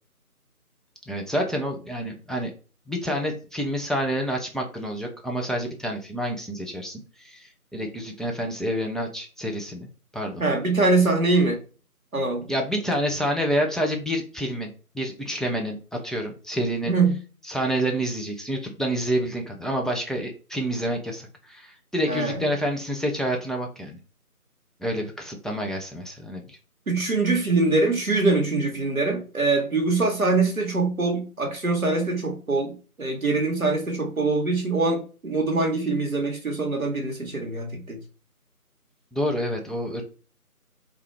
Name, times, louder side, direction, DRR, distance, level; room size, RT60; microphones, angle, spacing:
voice 1, 1.1-2.5 2.9-10.4 12.5-14.7 14.9-16.9 17.5-24.0 24.8-26.6 39.1-40.0, equal, ahead, 1 dB, 0.4 m, -28 dB
voice 2, 10.4-11.6 12.1-12.4 16.9-17.2 22.1-22.4 26.9-38.0, right 3 dB, 65° right, 1 dB, 1.1 m, -23 dB
3.2 x 2.3 x 3.2 m, 0.36 s
figure-of-eight pair, 175°, 45 cm